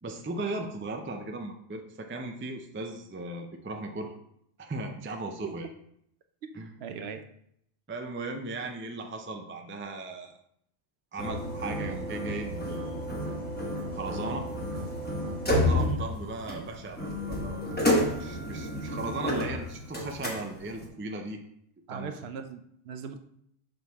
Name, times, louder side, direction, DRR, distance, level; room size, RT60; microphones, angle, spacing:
voice 1, 0.0-4.1 4.6-5.7 6.5-7.1 7.9-10.3 11.1-13.1 13.9-14.5 15.5-21.4 21.9-22.1, right 2 dB, 20° right, 4 dB, 0.3 m, -37 dB
voice 2, 6.8-7.3 15.8-16.0 21.9-23.2, right 6 dB, 70° right, 7 dB, 0.8 m, -39 dB
sound 1, 11.2-20.9, left 1 dB, 10° left, 1.0 m, -31 dB
6.3 x 4.4 x 3.5 m, 0.72 s
omnidirectional pair, 1.1 m